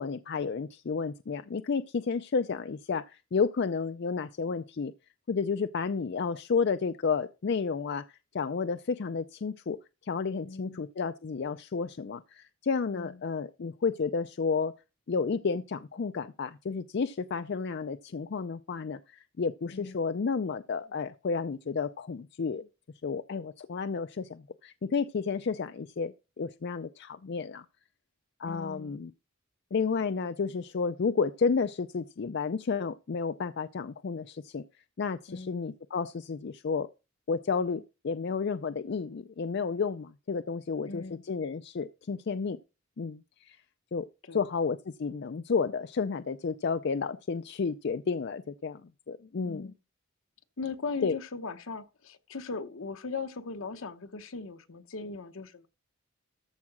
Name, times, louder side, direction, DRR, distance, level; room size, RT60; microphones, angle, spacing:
voice 1, 0.0-4.9 5.3-14.7 15.1-22.7 23.0-27.6 28.4-29.1 29.7-34.6 35.0-36.9 37.3-42.6 43.0-43.6 43.9-44.1 44.3-48.8 49.1-49.7 51.0-51.2, left 5 dB, 50° left, 0.4 m, -31 dB
voice 2, 10.4-10.9 12.9-13.2 19.7-20.0 28.5-29.0 35.3-35.5 40.8-41.2 44.2-44.5 49.4-49.7 50.6-55.7, left 4 dB, 70° left, 0.9 m, -39 dB
13.5 x 4.8 x 6.0 m
head